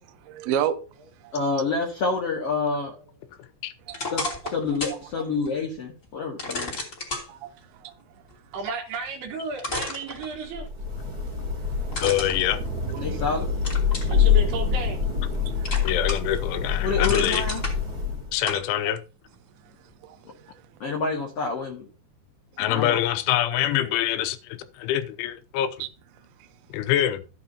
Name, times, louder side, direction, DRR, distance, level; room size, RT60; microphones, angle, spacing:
voice 1, 0.2-0.8 1.2-1.3 3.9-4.0 4.9-5.0 7.3-7.9 11.8-12.0 13.0-13.1 14.1-14.2 15.5-15.7 20.0-20.5 25.8-25.9, right 10 dB, 80° right, 2.2 m, -31 dB
voice 2, 1.3-2.9 4.0-6.8 13.0-13.5 16.8-17.6 20.8-21.9 22.7-23.0, left 4 dB, 50° left, 1.9 m, -28 dB
sound 1, 3.9-5.0 5.4-5.5 6.4-7.3 9.1-9.2 9.6-10.7 11.9-13.2 13.6-14.2 14.7-15.4 15.6-16.4 16.7-17.7 18.5-18.6, left 2 dB, 20° left, 2.8 m, -32 dB
voice 3, 8.5-10.7 14.0-15.0, right 4 dB, 65° right, 3.2 m, -33 dB
Thunder / Rain, 10.5-18.5, left 6 dB, 25° right, 2.3 m, -25 dB
voice 4, 12.0-12.6 15.8-17.4 18.3-19.0 22.6-25.7 26.7-27.2, left 12 dB, 80° left, 3.1 m, -25 dB
14.5 x 8.6 x 2.9 m
omnidirectional pair, 5.7 m